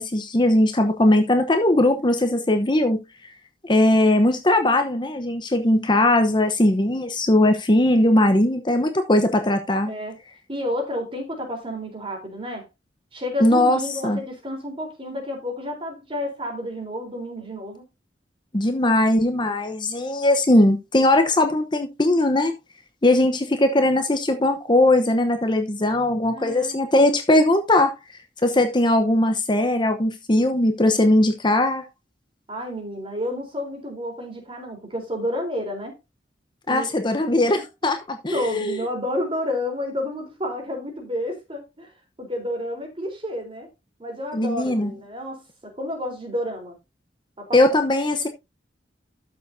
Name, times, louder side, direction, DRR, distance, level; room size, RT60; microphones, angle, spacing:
voice 1, 0.0-3.0 3.6-9.9 13.4-14.2 18.5-22.5 23.0-27.9 28.4-31.8 36.7-38.8 44.3-44.9 47.5-48.3, left 1 dB, 25° left, 0.9 m, -19 dB
voice 2, 9.9-10.2 10.5-12.7 13.1-17.8 26.3-26.8 32.5-36.0 36.7-36.9 37.8-37.9 38.3-41.9 42.2-43.7 44.0-46.8 47.4-47.8, left 1 dB, 30° right, 3.7 m, -30 dB
13.0 x 6.9 x 2.7 m
head